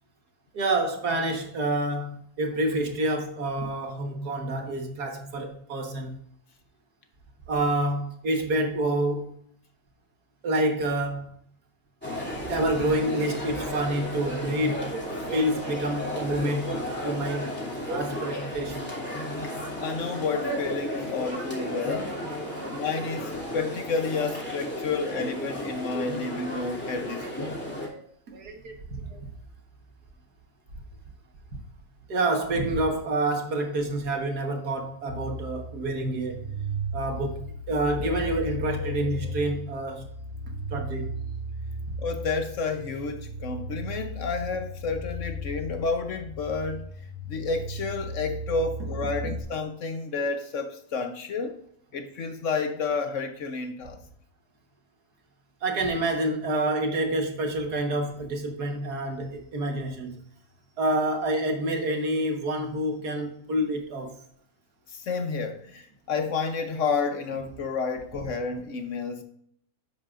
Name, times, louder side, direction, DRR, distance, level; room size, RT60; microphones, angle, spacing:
voice 1, 0.5-6.2 7.5-9.3 10.4-11.3 12.5-14.9 15.3-16.8 17.0-17.5 17.9-18.8 21.1-21.2 21.9-22.0 22.3-22.8 27.2-27.5 27.8-29.2 31.5-31.6 32.1-36.4 36.9-40.1 40.7-41.1 55.6-60.2 60.8-64.2, right 1 dB, 55° right, 1.8 m, -28 dB
sound 1, 12.0-27.9, equal, 5° left, 2.7 m, -33 dB
voice 2, 19.8-22.1 22.6-27.6 42.0-46.9 47.3-51.6 51.9-54.0 64.9-69.2, left 4 dB, 60° left, 0.8 m, -30 dB
sound 2, 35.1-49.4, equal, 35° right, 2.3 m, -36 dB
10.5 x 7.5 x 2.5 m
omnidirectional pair, 2.2 m